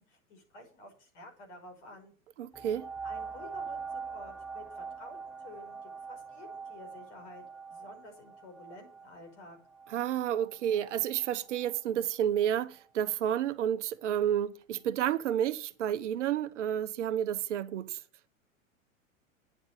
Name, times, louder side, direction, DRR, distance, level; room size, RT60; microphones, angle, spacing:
voice 1, 0.0-2.1 3.0-5.2 5.4-7.4 7.7-9.6, left 1 dB, 55° left, 5.9 m, -51 dB
voice 2, 2.4-2.9 9.9-18.0, right 10 dB, 60° right, 1.0 m, -30 dB
sound 1, 2.5-11.8 12.4-12.5, right 5 dB, ahead, 0.4 m, -44 dB
9.5 x 7.1 x 8.2 m
figure-of-eight pair, 95°, 41 cm